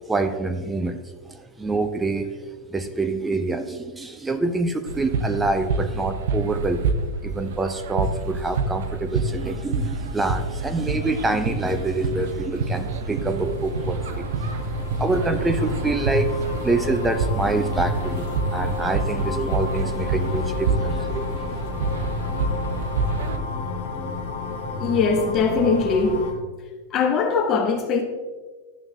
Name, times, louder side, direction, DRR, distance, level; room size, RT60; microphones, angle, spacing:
voice 1, 0.1-2.3 2.7-6.9 7.2-14.5 15.0-16.3 16.6-21.5, right 2 dB, 10° right, 7 dB, 0.6 m, -26 dB
sound 1, 4.8-23.4, right 3 dB, 60° right, 0.7 m, -27 dB
sound 2, 11.9-26.3, left 4 dB, 55° left, 2.0 m, -32 dB
voice 2, 24.8-26.3 26.9-28.0, left 4 dB, 35° left, 5 dB, 0.8 m, -21 dB
11.5 x 6.8 x 2.7 m, 1.3 s
figure-of-eight pair, 90°, 0 cm